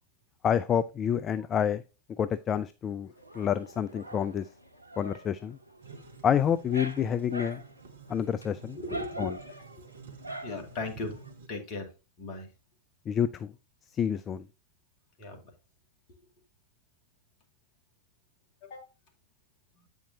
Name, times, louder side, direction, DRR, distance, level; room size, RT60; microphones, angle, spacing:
voice 1, 0.4-1.8 2.2-3.1 3.4-4.5 5.0-5.6 6.2-7.6 8.1-8.8 9.2-9.3 13.1-13.5 13.9-14.4, left 8 dB, 25° left, 0.4 m, -28 dB
Dog, 3.2-11.3, right 2 dB, 90° left, 0.9 m, -44 dB
sound 1, 5.8-11.5, right 5 dB, 60° right, 1.0 m, -50 dB
voice 2, 8.7-9.4 10.4-11.2 11.5-11.9 12.2-12.5 15.2-15.4 18.6-18.8 19.8-19.9, left 2 dB, 45° left, 2.3 m, -37 dB
8.6 x 5.7 x 2.8 m
figure-of-eight pair, 90°, 0 cm